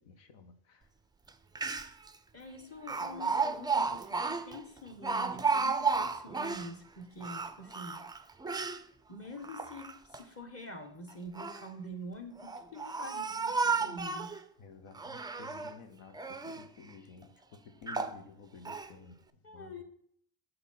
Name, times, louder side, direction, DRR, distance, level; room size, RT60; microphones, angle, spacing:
voice 1, 0.1-0.8 14.6-17.3 17.8-19.2 19.5-19.7, left 5 dB, 75° left, 0.9 m, -52 dB
Speech, 1.3-1.4 1.6-2.1 2.9-6.7 7.2-8.8 9.4-10.2 11.1-11.7 12.4-14.4 14.9-15.8 16.1-16.7 17.2-17.3 17.9-18.2 18.7-18.9, right 4 dB, 10° right, 0.3 m, -33 dB
voice 2, 2.3-8.0 9.1-14.4 19.4-19.8, left 1 dB, 30° left, 1.3 m, -46 dB
8.0 x 2.8 x 5.7 m
supercardioid pair, 60°, 46 cm